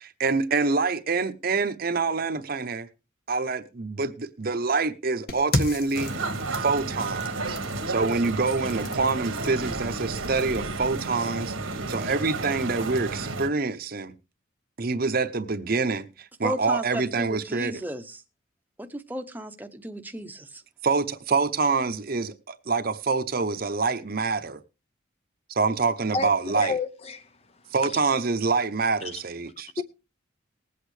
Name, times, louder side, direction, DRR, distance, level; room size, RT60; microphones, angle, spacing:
voice 1, 0.0-2.9 3.3-6.1 6.5-7.6 7.9-14.1 14.8-17.8 20.8-24.6 25.5-26.7 27.7-29.8, right 4 dB, 45° right, 0.8 m, -26 dB
sound 1, 5.3-11.1, left 2 dB, 50° left, 1.7 m, -35 dB
sound 2, 5.9-13.5, right 3 dB, 90° right, 1.4 m, -32 dB
voice 2, 16.4-18.2 18.8-20.6, equal, 10° right, 0.8 m, -34 dB
voice 3, 26.5-27.3 29.8-29.9, left 4 dB, 30° left, 0.6 m, -29 dB
20.0 x 8.3 x 3.3 m
head